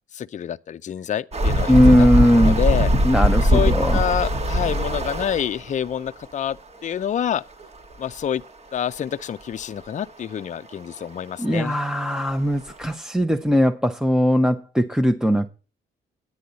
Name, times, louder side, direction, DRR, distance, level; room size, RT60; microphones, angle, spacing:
voice 1, 0.1-2.1 2.3-2.9 3.4-7.4 8.0-8.4 8.7-11.7, left 9 dB, 40° left, 0.5 m, -27 dB
sound 1, 1.3-5.7 7.6-7.7 7.9-8.0 8.9-9.0 11.5-11.6 12.1-12.2 12.7-12.9, equal, 30° right, 1.3 m, -20 dB
voice 2, 1.7-2.6 3.0-4.0 11.4-15.5, equal, 5° right, 0.7 m, -19 dB
10.0 x 9.6 x 4.0 m
cardioid pair, 90°, 20 cm